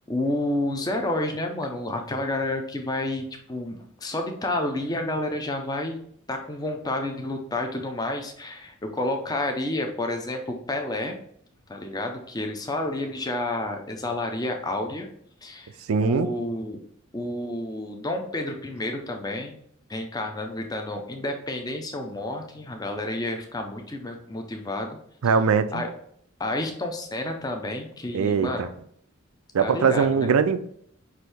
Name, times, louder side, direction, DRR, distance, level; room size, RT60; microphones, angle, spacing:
voice 1, 0.1-6.0 6.3-11.2 11.7-15.1 15.4-15.7 16.0-16.8 17.1-19.6 19.9-25.0 25.7-25.9 26.4-28.7 29.6-30.3, left 1 dB, 20° left, 0.6 m, -30 dB
voice 2, 15.9-16.3 25.2-25.8 28.1-28.7 29.5-30.7, right 5 dB, 85° right, 0.4 m, -21 dB
6.0 x 2.6 x 3.4 m
head